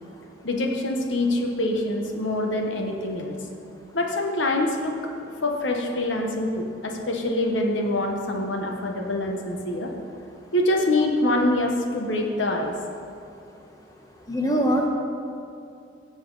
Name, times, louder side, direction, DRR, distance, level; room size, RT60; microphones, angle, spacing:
voice 1, 0.4-3.4 3.9-4.9 5.4-9.9 10.5-12.7, left 1 dB, 80° left, 2 dB, 1.2 m, -25 dB
voice 2, 14.2-14.9, equal, 20° left, 1 dB, 1.1 m, -25 dB
16.5 x 6.8 x 4.0 m, 2.5 s
head